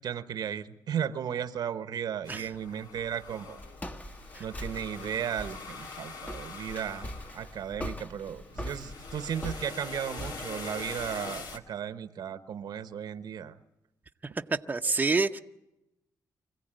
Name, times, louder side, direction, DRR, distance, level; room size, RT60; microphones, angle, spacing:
voice 1, 0.0-3.6 4.4-13.6, right 8 dB, 75° right, 11 dB, 1.1 m, -35 dB
sound 1, 2.2-11.6, left 4 dB, 80° left, 2.1 m, -44 dB
Walk footsteps, 3.0-11.6, equal, 20° left, 1.3 m, -42 dB
voice 2, 14.7-15.4, right 3 dB, 25° right, 6 dB, 0.8 m, -27 dB
25.5 x 16.0 x 9.0 m, 0.92 s
cardioid pair, 75°, 7 cm